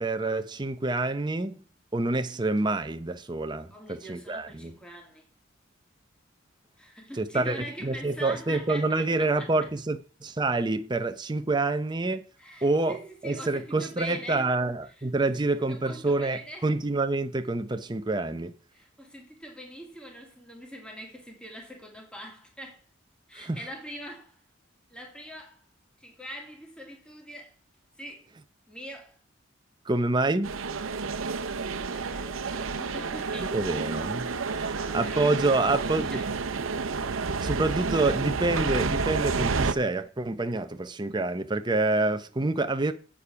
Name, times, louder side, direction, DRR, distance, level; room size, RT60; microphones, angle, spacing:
voice 1, 0.0-1.6 1.9-4.7 7.2-12.3 12.6-13.0 13.2-18.5 23.3-23.6 29.9-30.6 33.5-34.3 34.5-36.2 37.4-42.9, right 2 dB, 20° right, 0.7 m, -27 dB
voice 2, 3.7-5.3 6.8-9.5 12.4-14.5 15.0-15.1 15.4-16.7 18.7-22.8 23.3-24.4 24.9-25.6 26.0-27.5 28.0-28.3 28.7-29.2 31.3-33.8 34.7-36.3, equal, 5° left, 2.3 m, -43 dB
sound 1, 30.4-39.7, right 4 dB, 90° right, 0.8 m, -30 dB
8.5 x 7.2 x 5.8 m
head